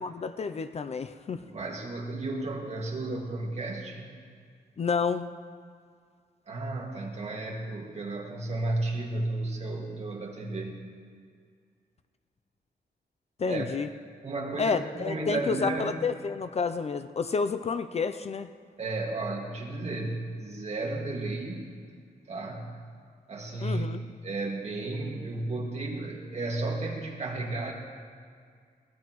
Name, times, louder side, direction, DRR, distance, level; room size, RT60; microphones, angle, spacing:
voice 1, 0.0-1.4 4.8-5.3 13.4-13.9 14.6-18.5 23.6-24.0, left 5 dB, 40° left, 10 dB, 0.4 m, -30 dB
voice 2, 1.4-4.2 6.5-10.9 13.5-13.6 14.2-16.0 18.8-21.7 22.3-22.8 23.3-23.9 24.2-27.7, right 2 dB, 40° right, -1 dB, 2.0 m, -33 dB
22.0 x 17.5 x 3.1 m, 2.1 s
wide cardioid pair, 180°, 17 cm